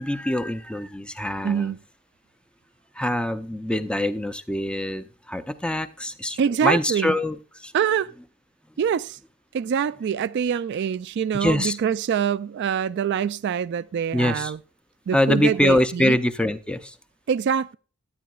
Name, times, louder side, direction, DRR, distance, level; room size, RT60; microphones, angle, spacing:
voice 1, 0.0-1.7 3.0-7.7 11.3-11.8 14.1-14.5 15.1-16.9, left 1 dB, 5° left, 0.5 m, -24 dB
voice 2, 1.4-1.8 6.4-7.2 7.7-8.1 8.8-9.2 9.5-14.6 15.1-16.2 17.3-17.7, right 7 dB, 55° right, 0.3 m, -24 dB
12.0 x 9.5 x 2.4 m
head